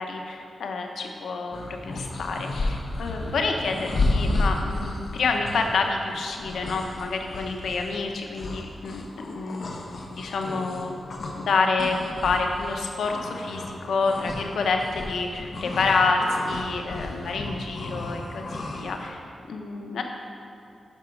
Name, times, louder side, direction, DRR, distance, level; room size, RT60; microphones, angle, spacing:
voice 1, 0.0-10.9 11.3-19.2 19.5-20.0, left 4 dB, 90° left, 3 dB, 0.9 m, -28 dB
sound 1, 1.5-11.5 11.8-19.1, left 2 dB, 55° left, 1.1 m, -32 dB
11.0 x 5.8 x 5.3 m, 2.6 s
wide cardioid pair, 115°, 0 cm